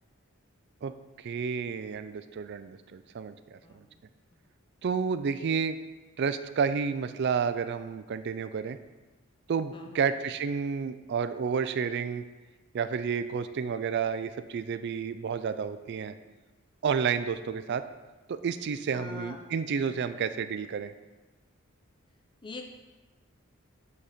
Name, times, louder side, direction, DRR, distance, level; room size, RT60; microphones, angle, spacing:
voice 1, 1.2-3.6 4.8-5.8 6.2-8.8 9.5-12.2 12.7-16.1 16.8-17.8 18.3-20.9, right 6 dB, 55° right, 12 dB, 0.4 m, -30 dB
voice 2, 9.7-10.1 18.9-19.4 22.4-22.6, left 2 dB, 25° left, 3 dB, 0.5 m, -43 dB
8.8 x 4.1 x 5.0 m, 1.2 s
head